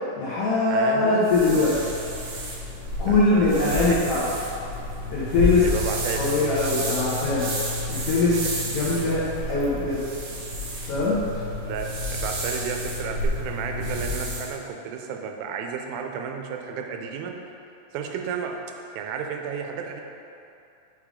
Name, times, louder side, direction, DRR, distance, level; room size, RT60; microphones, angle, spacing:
voice 1, 0.2-1.8 3.0-4.2 5.1-5.6 6.1-7.5 7.9-8.4 8.7-10.1 10.9-11.2, left 3 dB, 85° left, -9 dB, 1.3 m, -22 dB
voice 2, 0.7-1.2 3.0-4.2 5.6-6.5 11.6-17.4 17.9-18.6 19.0-20.0, right 6 dB, 90° right, 3 dB, 2.3 m, -32 dB
sound 1, 1.2-14.5, left 1 dB, 70° right, 2.4 m, -30 dB
6.5 x 3.3 x 4.9 m, 2.7 s
omnidirectional pair, 4.1 m